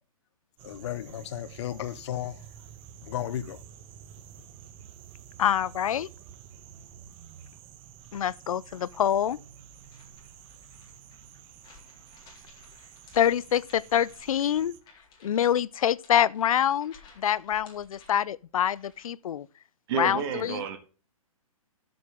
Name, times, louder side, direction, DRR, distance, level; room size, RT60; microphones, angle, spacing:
voice 1, 0.6-2.4 3.0-3.6, left 11 dB, 50° left, 1.0 m, -34 dB
sound 1, 0.6-14.8, right 9 dB, 30° right, 1.0 m, -50 dB
voice 2, 5.4-6.1 8.1-9.4 13.1-14.7 15.2-19.5 20.0-20.6, left 10 dB, 70° left, 0.6 m, -26 dB
sound 2, 9.7-19.2, left 4 dB, 25° left, 3.7 m, -57 dB
voice 3, 19.9-20.8, right 7 dB, 45° right, 1.8 m, -30 dB
12.0 x 7.7 x 3.6 m
hypercardioid pair, 135°, 18 cm